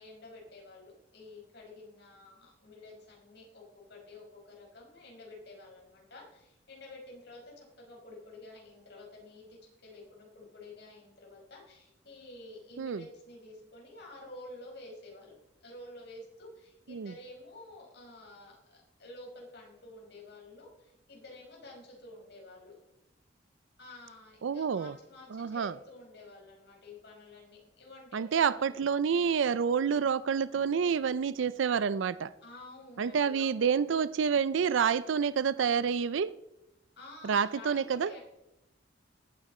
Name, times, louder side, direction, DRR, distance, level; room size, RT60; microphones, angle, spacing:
voice 1, 0.0-3.6 3.9-15.3 15.6-22.7 23.8-28.8 32.4-33.7 37.0-38.2, left 2 dB, 60° left, -1 dB, 5.1 m, -50 dB
voice 2, 24.4-24.9 25.3-25.7 28.1-32.3 33.0-36.3 37.2-38.1, right 6 dB, 85° right, 16 dB, 0.4 m, -28 dB
19.0 x 8.9 x 4.2 m, 0.87 s
head